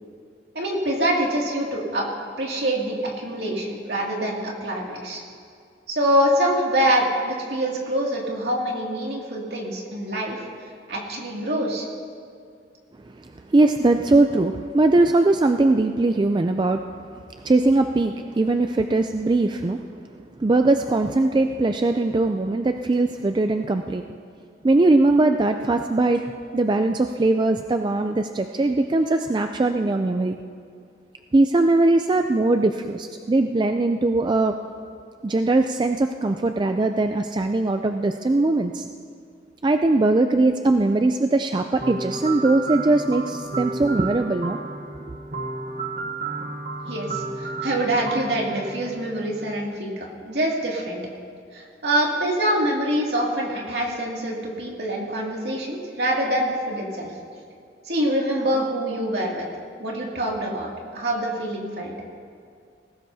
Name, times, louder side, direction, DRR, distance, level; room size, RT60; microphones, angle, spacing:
voice 1, 0.5-2.1 2.4-5.2 5.9-10.4 10.9-11.9 46.9-51.0 51.5-57.1 57.9-59.4 59.8-61.9, right 1 dB, 65° right, -2 dB, 2.4 m, -25 dB
voice 2, 13.2-16.8 17.4-19.8 20.4-24.0 24.6-26.3 26.5-30.4 31.3-34.6 35.2-38.9 39.6-44.6 45.1-45.2, right 2 dB, 25° right, 6 dB, 0.3 m, -20 dB
sound 1, 41.8-49.7, right 3 dB, 45° right, 1.1 m, -32 dB
19.5 x 17.0 x 2.7 m, 2.3 s
head